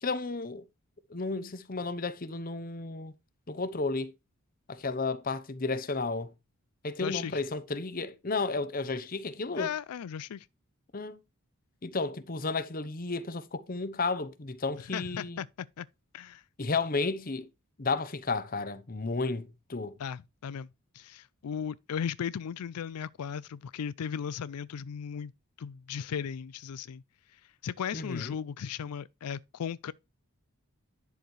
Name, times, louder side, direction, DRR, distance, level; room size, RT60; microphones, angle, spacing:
voice 1, 0.0-0.6 1.1-3.1 3.5-4.1 4.7-6.3 6.8-9.7 10.9-11.2 11.8-15.4 16.6-17.5 17.8-19.9 27.9-28.3, left 3 dB, 40° left, 0.8 m, -33 dB
voice 2, 7.0-7.4 9.5-10.5 14.9-15.9 16.1-16.4 20.0-20.7 20.9-25.3 25.6-27.0 27.3-29.9, left 7 dB, 90° left, 0.4 m, -36 dB
10.5 x 7.0 x 3.2 m
head